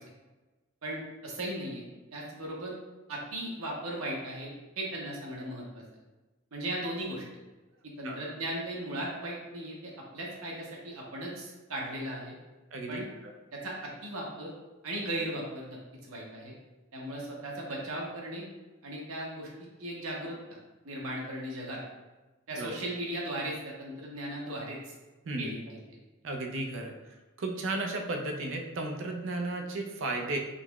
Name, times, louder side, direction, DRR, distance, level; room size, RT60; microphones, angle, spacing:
voice 1, 0.8-2.7 3.1-5.8 6.5-7.2 8.0-12.3 12.9-13.1 13.5-14.5 14.8-16.5 16.9-18.4 18.8-20.4 20.8-21.8 22.5-24.9 25.4-25.8, right 1 dB, 90° right, -3 dB, 0.9 m, -37 dB
voice 2, 12.7-13.0 22.5-22.7 25.3-25.5 26.2-26.9 27.4-30.4, right 2 dB, 65° right, 3 dB, 0.4 m, -34 dB
3.8 x 2.9 x 2.3 m, 1.2 s
head